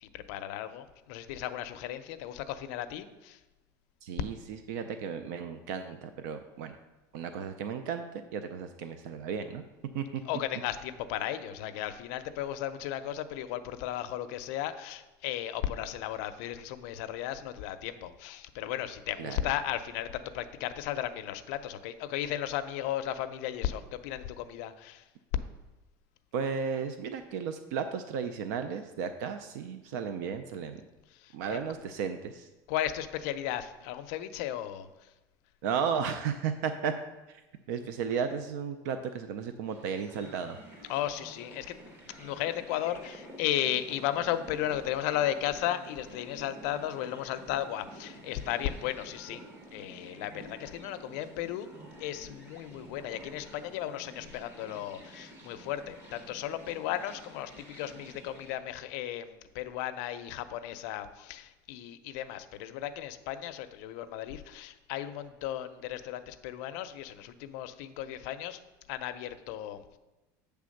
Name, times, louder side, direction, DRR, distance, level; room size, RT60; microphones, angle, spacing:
voice 1, 0.0-3.4 10.2-25.1 31.1-31.6 32.7-35.1 40.9-49.4 49.7-51.7 52.0-68.6 68.9-70.0, left 12 dB, 65° left, 11 dB, 0.5 m, -35 dB
voice 2, 4.0-4.4 4.7-6.8 7.1-9.6 9.9-10.2 19.2-19.4 26.3-30.8 31.3-32.5 35.6-36.9 37.3-37.4 37.7-40.6, right 6 dB, 85° right, 8 dB, 0.5 m, -34 dB
sound 1, 39.6-58.6, right 1 dB, 25° right, 0.9 m, -50 dB
8.3 x 3.4 x 6.4 m, 1.1 s
cardioid pair, 170°, 9 cm